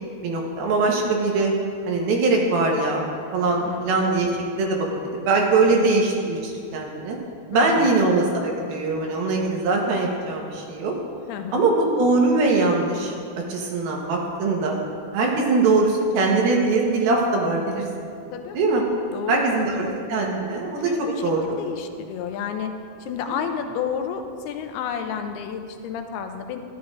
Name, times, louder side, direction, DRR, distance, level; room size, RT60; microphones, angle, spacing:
voice 1, 0.2-1.5 1.9-4.9 5.2-7.2 7.5-10.9 11.5-13.1 13.5-14.8 15.1-17.8 18.5-18.8 19.3-20.9 21.2-21.4 23.2-23.3, right 3 dB, 75° right, 0 dB, 2.9 m, -22 dB
voice 2, 3.6-4.0 5.7-5.9 7.5-8.0 11.3-11.7 18.3-18.6 19.1-19.4 19.8-20.1 20.8-22.7 23.0-26.6, left 7 dB, 85° left, 6 dB, 2.6 m, -31 dB
13.5 x 11.0 x 2.5 m, 2.3 s
omnidirectional pair, 4.4 m